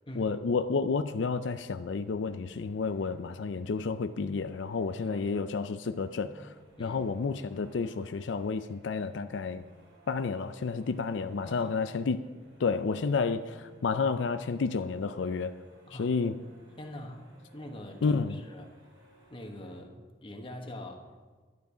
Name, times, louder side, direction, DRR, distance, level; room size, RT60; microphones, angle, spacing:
voice 1, 0.1-6.5 6.8-9.6 10.1-12.2 12.6-15.6 15.9-16.4 18.0-18.4, left 4 dB, 85° left, 11 dB, 0.5 m, -30 dB
sound 1, 1.7-19.8, equal, 80° right, 3.8 m, -59 dB
voice 2, 16.8-18.7 19.3-21.1, left 1 dB, 30° left, 3 dB, 1.3 m, -43 dB
12.0 x 9.6 x 5.0 m, 1.4 s
head